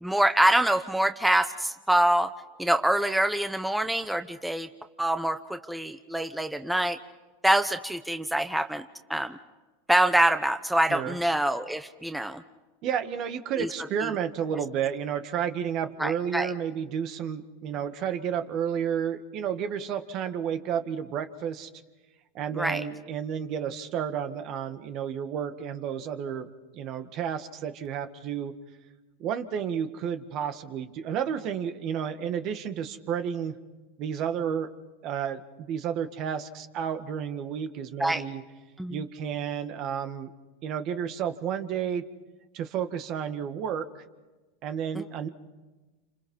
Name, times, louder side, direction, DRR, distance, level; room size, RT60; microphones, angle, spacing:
voice 1, 0.0-2.3 2.6-4.7 5.0-7.0 7.4-8.8 9.1-9.4 9.9-12.4 13.6-13.7 14.0-14.1 16.0-16.5 22.6-22.8 38.0-38.2 38.8-39.0 44.9-45.0, right 1 dB, 5° right, 8 dB, 0.9 m, -25 dB
voice 2, 12.8-21.7 22.3-26.5 26.7-28.5 29.2-33.6 34.0-34.7 35.0-35.4 35.7-38.4 38.9-40.3 40.6-42.1 42.5-43.9 44.6-45.3, right 8 dB, 50° right, 9 dB, 1.8 m, -31 dB
29.0 x 26.5 x 5.6 m, 1.2 s
hypercardioid pair, 110°, 0 cm